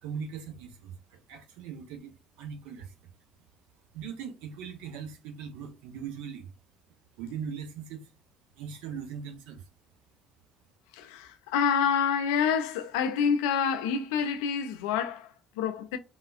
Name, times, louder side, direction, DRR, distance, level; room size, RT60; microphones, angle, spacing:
voice 1, 0.0-3.1 3.9-6.5 7.2-8.1 8.6-9.6, right 7 dB, 65° right, 0.7 m, -40 dB
voice 2, 10.9-16.0, left 7 dB, 70° left, 0.4 m, -27 dB
3.5 x 2.3 x 2.4 m
figure-of-eight pair, 55°, 2 cm